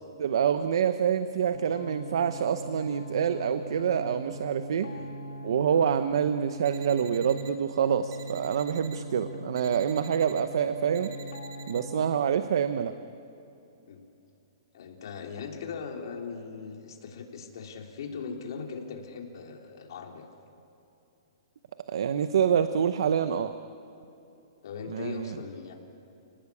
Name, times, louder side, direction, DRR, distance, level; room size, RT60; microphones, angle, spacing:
voice 1, 0.2-4.9 5.4-11.1 11.7-12.9 21.9-23.5 24.9-25.3, right 8 dB, 65° right, 10 dB, 0.9 m, -26 dB
sound 1, 1.5-12.2, equal, 90° left, 2.8 m, -41 dB
sound 2, 6.7-7.5 8.1-9.0 9.6-10.4 10.9-11.8, right 8 dB, 35° right, 2.3 m, -49 dB
voice 2, 14.7-20.3 24.6-25.7, left 5 dB, 55° left, 2 dB, 3.5 m, -39 dB
30.0 x 19.0 x 8.5 m, 2.8 s
hypercardioid pair, 165°, 3 cm